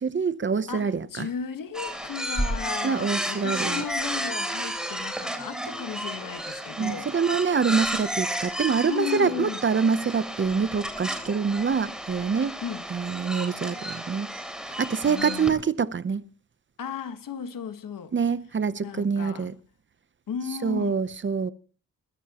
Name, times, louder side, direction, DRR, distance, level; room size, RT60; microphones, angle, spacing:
voice 1, 0.0-1.3 2.8-3.8 6.8-12.6 12.9-14.3 14.7-16.2 18.1-19.5 20.6-21.5, right 5 dB, 35° right, 0.7 m, -25 dB
voice 2, 0.7-7.1 8.9-9.6 12.6-12.9 15.0-15.6 16.8-18.1 18.8-19.5 20.3-21.0, left 7 dB, 80° left, 1.5 m, -35 dB
sound 1, 1.7-15.5, equal, ahead, 3.3 m, -32 dB
21.0 x 14.5 x 2.9 m
wide cardioid pair, 115°, 33 cm